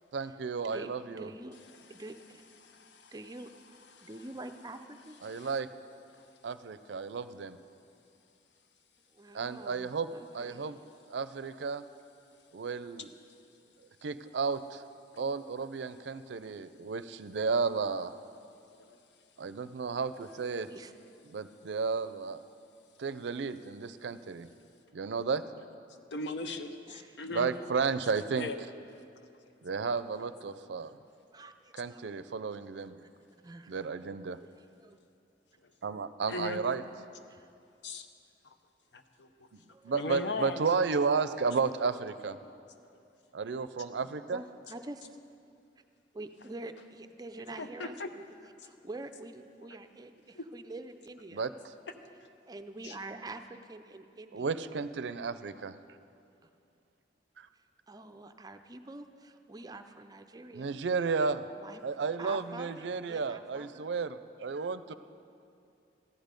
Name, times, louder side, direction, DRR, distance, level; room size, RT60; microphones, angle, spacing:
voice 1, 0.1-1.3 5.2-5.7 6.4-7.6 9.3-10.1 10.3-10.8 11.1-11.8 12.5-13.1 14.0-14.8 15.2-18.1 19.4-20.7 21.3-22.4 23.0-24.5 24.9-25.4 27.3-28.5 29.6-31.0 31.7-32.9 33.7-34.4 35.8-36.8 39.8-42.4 43.3-44.4 51.3-51.7 54.3-55.7 57.4-57.5 60.5-61.4 61.8-64.9, right 5 dB, 75° right, 13 dB, 0.5 m, -33 dB
voice 2, 0.6-1.6 1.9-2.4 3.1-3.5 4.0-4.8 5.1-5.2 9.1-10.6 20.7-20.9 26.9-27.2 29.9-30.3 31.3-32.0 33.4-33.8 34.8-35.0 37.3-37.5 39.7-39.9 44.3-45.2 46.1-48.2 48.6-51.5 52.5-54.5 57.9-60.7 61.6-61.8 62.2-63.9 64.9-65.0, right 2 dB, 20° right, 8 dB, 0.5 m, -46 dB
voice 3, 2.6-3.1 3.9-4.1 5.3-5.5 18.9-19.0 26.1-27.5 28.3-28.6 36.3-36.6 37.8-38.1 38.9-39.3 39.9-40.6 42.4-42.5 47.6-48.1 50.3-50.5 52.8-53.0, left 2 dB, 75° left, 8 dB, 0.8 m, -38 dB
14.5 x 10.5 x 5.2 m, 2.5 s
head